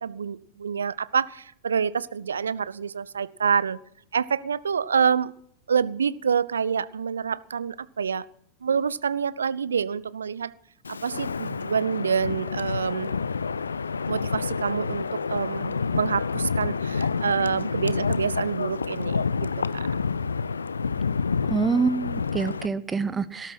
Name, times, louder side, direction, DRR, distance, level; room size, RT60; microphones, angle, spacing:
voice 1, 0.0-3.8 4.1-5.3 5.7-8.3 8.6-10.5 10.9-13.1 14.1-19.9, right 6 dB, 70° right, 19 dB, 0.7 m, -27 dB
Wind, 10.8-22.7, left 5 dB, 75° left, 0.6 m, -28 dB
voice 2, 21.5-23.5, right 4 dB, 15° right, 15 dB, 0.9 m, -26 dB
18.0 x 12.5 x 6.1 m, 0.67 s
figure-of-eight pair, 90°, 0 cm